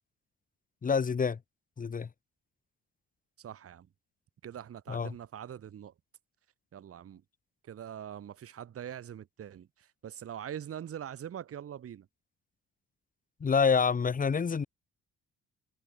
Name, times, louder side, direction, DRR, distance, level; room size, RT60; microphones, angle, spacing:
voice 1, 0.8-1.4 1.8-2.1 4.9-5.1 13.4-14.7, left 5 dB, 25° left, 0.9 m, -27 dB
voice 2, 3.4-3.9 4.4-5.9 6.7-7.2 7.6-12.1, right 9 dB, 50° right, 1.2 m, -43 dB
cardioid pair, 90°, 30 cm